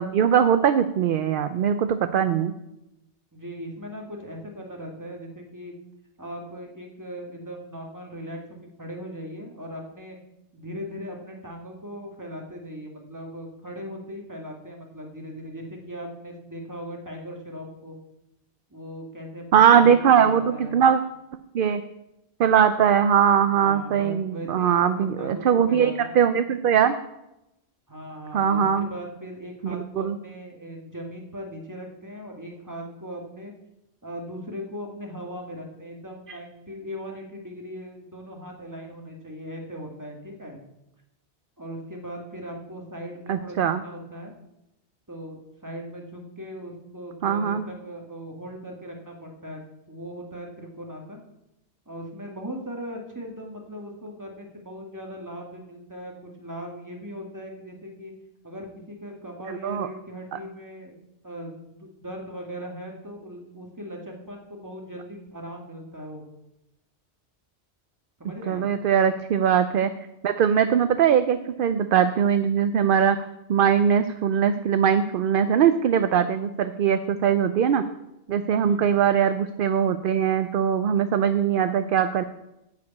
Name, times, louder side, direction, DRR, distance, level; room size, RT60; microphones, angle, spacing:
voice 1, 0.0-2.5 19.5-21.0 21.5-21.8 22.4-26.9 28.3-28.9 29.6-30.2 36.3-36.4 43.3-43.8 47.2-47.7 59.5-59.9 60.3-60.4 68.5-69.9 70.2-73.2 73.5-77.8 78.3-82.2, right 8 dB, 60° right, 10 dB, 0.6 m, -21 dB
voice 2, 3.3-5.7 6.2-10.2 10.5-18.0 18.7-19.9 20.2-20.8 23.5-26.2 27.9-33.5 34.0-40.6 41.6-44.3 45.1-49.6 49.9-51.2 51.8-58.1 58.4-61.0 61.2-66.2 68.2-68.6 78.5-78.9, equal, 15° right, 0 dB, 1.7 m, -39 dB
10.5 x 5.0 x 8.3 m, 0.90 s
omnidirectional pair, 1.2 m